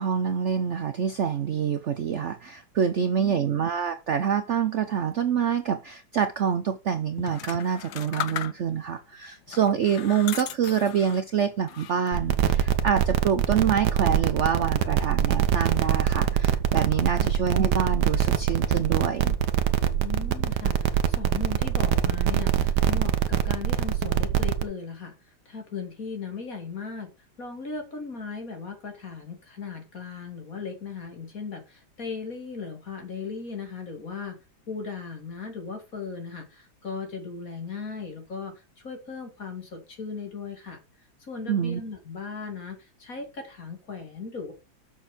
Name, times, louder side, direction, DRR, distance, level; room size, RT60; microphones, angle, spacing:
voice 1, 0.0-19.3 41.5-41.8, right 7 dB, 80° right, 0.6 m, -26 dB
voice 2, 3.0-3.5 17.2-17.3 20.0-27.1 27.4-34.4 34.7-40.8 41.2-44.5, left 5 dB, 45° left, 2.9 m, -37 dB
sound 1, 7.2-8.9 9.5-11.3 11.7-12.3, left 11 dB, 65° left, 1.1 m, -37 dB
sound 2, 12.1-24.6, right 9 dB, 65° right, 1.4 m, -24 dB
7.2 x 6.5 x 5.1 m
omnidirectional pair, 2.1 m